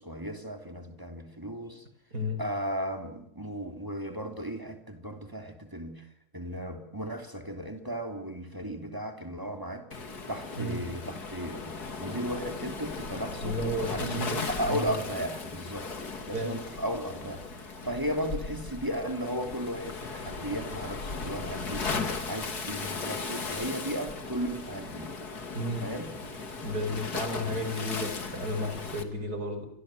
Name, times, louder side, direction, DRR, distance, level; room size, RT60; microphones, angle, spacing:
voice 1, 0.0-1.8 2.4-6.1 6.3-13.6 13.9-25.1 25.7-26.1, equal, 15° right, 5 dB, 3.2 m, -35 dB
voice 2, 2.1-2.4 10.6-10.8 13.4-14.9 16.3-16.5 25.5-25.9 26.6-29.7, left 1 dB, 85° right, 7 dB, 6.2 m, -33 dB
Waves surf, 9.9-29.0, left 4 dB, 85° left, 3.0 m, -37 dB
29.0 x 25.5 x 7.8 m, 0.69 s
omnidirectional pair, 1.6 m